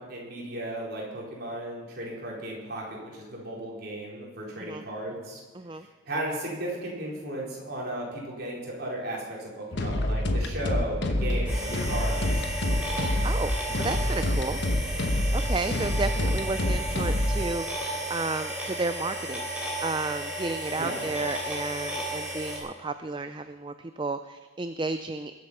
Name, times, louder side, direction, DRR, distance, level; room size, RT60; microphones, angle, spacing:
voice 1, 0.0-5.4 5.8-12.5 20.8-21.0, right 1 dB, 50° right, -3 dB, 4.3 m, -35 dB
voice 2, 5.5-5.9 13.2-14.6 15.3-19.5 19.8-25.4, right 3 dB, 25° right, 10 dB, 0.4 m, -32 dB
sound 1, 9.7-17.4, left 1 dB, 55° left, 1.2 m, -27 dB
sound 2, 11.5-22.6, right 1 dB, 5° right, 3.4 m, -34 dB
21.5 x 8.2 x 5.7 m, 1.4 s
head